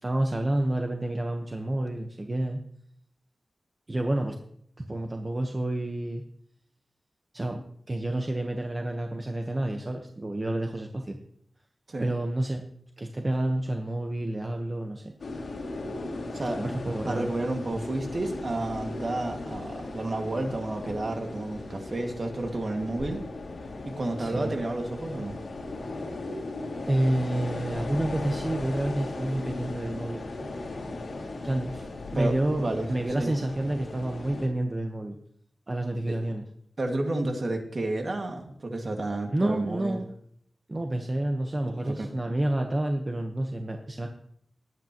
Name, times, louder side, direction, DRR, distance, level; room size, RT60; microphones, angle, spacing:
voice 1, 0.0-2.6 3.9-4.4 4.8-6.2 7.3-11.2 12.0-12.6 13.0-15.1 16.5-17.3 24.2-24.6 26.9-30.2 31.4-31.7 32.1-35.2 35.7-36.4 39.3-40.1 40.7-44.1, right 1 dB, 30° right, 3 dB, 1.1 m, -29 dB
sound 1, 15.2-34.5, left 2 dB, 85° left, 2.5 m, -37 dB
voice 2, 17.1-23.2 23.8-25.4 32.1-32.9 33.2-33.3 36.1-36.2 36.8-40.0 41.9-42.1, right 2 dB, 50° right, 3 dB, 2.0 m, -31 dB
20.0 x 9.1 x 3.0 m, 0.66 s
wide cardioid pair, 100°, 0 cm